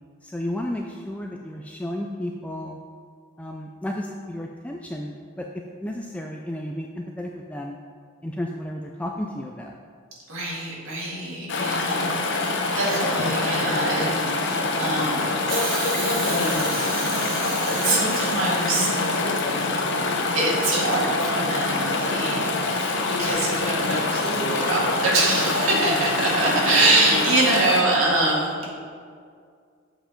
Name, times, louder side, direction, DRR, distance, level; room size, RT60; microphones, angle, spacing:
voice 1, 0.2-2.8 3.4-5.5 5.8-7.8 8.2-9.8, left 1 dB, 5° left, 0 dB, 0.3 m, -32 dB
voice 2, 10.3-15.4 16.2-16.8 17.8-19.1 20.3-28.7, right 2 dB, 80° right, -6 dB, 2.1 m, -24 dB
Chatter / Stream, 11.5-27.8, left 3 dB, 60° left, 0.8 m, -25 dB
Hiss, 15.5-19.6 20.7-20.8, right 3 dB, 45° right, 1.3 m, -33 dB
7.6 x 5.0 x 5.1 m, 2.1 s
head